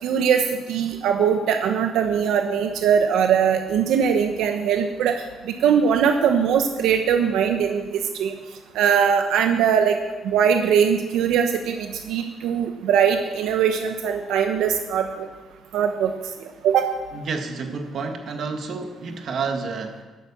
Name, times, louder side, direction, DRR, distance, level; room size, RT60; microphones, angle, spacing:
voice 1, 0.0-8.3 8.7-10.0 10.2-15.3 15.7-16.1 16.6-16.9, right 7 dB, 90° right, 5 dB, 1.1 m, -21 dB
voice 2, 17.1-20.0, right 4 dB, 50° right, 5 dB, 1.9 m, -30 dB
12.0 x 11.5 x 7.2 m, 1.2 s
cardioid pair, 140°, 0 cm